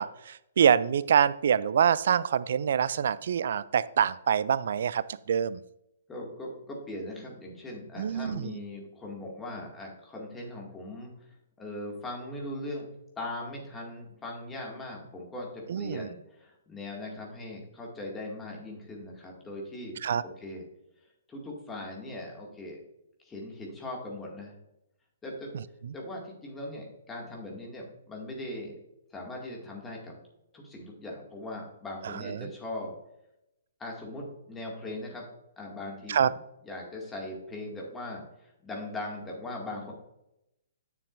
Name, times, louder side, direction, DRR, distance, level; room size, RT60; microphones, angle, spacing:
voice 1, 0.0-5.6 8.0-8.6 15.7-16.1 20.0-20.2 32.3-32.5 36.1-36.3, right 8 dB, 55° right, 18 dB, 0.4 m, -25 dB
voice 2, 6.1-11.1 11.6-12.9 13.2-20.0 20.4-20.6 21.3-22.8 23.2-24.6 25.2-25.5 25.9-28.8 29.1-30.2 30.5-32.9 33.8-35.3 35.6-39.9, left 1 dB, 15° left, -2 dB, 2.2 m, -40 dB
9.8 x 6.9 x 2.6 m, 0.83 s
figure-of-eight pair, 120°, 0 cm